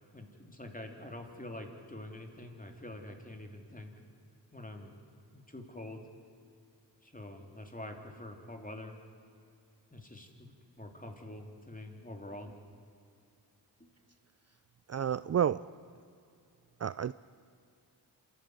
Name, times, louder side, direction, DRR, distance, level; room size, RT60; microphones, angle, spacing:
voice 1, 0.1-3.9 4.5-4.9 5.3-6.0 7.0-9.0 9.9-12.6 13.8-13.9, left 1 dB, 20° left, 3 dB, 3.5 m, -46 dB
voice 2, 14.9-15.6 16.8-17.1, right 9 dB, 40° right, 16 dB, 0.4 m, -30 dB
27.0 x 13.0 x 9.7 m, 2.4 s
cardioid pair, 55°, 42 cm